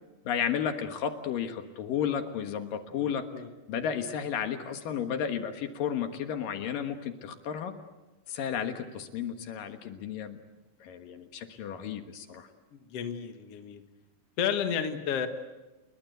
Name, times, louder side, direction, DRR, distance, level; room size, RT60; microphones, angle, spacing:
voice 1, 0.2-3.2 3.7-7.8 8.3-10.4 10.8-12.5, left 8 dB, 70° left, 7 dB, 3.0 m, -33 dB
voice 2, 12.7-13.8 14.4-15.3, left 8 dB, 50° left, 7 dB, 2.2 m, -31 dB
29.0 x 21.5 x 8.1 m, 1.1 s
omnidirectional pair, 4.3 m